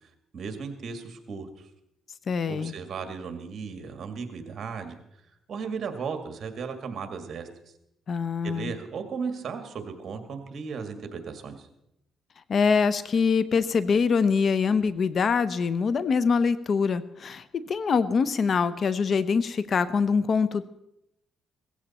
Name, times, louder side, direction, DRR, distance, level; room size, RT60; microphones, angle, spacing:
voice 1, 0.0-1.7 2.5-5.0 5.5-7.5 8.4-11.7, right 5 dB, 55° right, 7 dB, 2.0 m, -36 dB
voice 2, 2.3-2.7 8.1-8.7 12.5-20.7, left 5 dB, 50° left, 15 dB, 0.7 m, -24 dB
17.0 x 14.5 x 4.2 m, 0.84 s
cardioid pair, 90°, 0 cm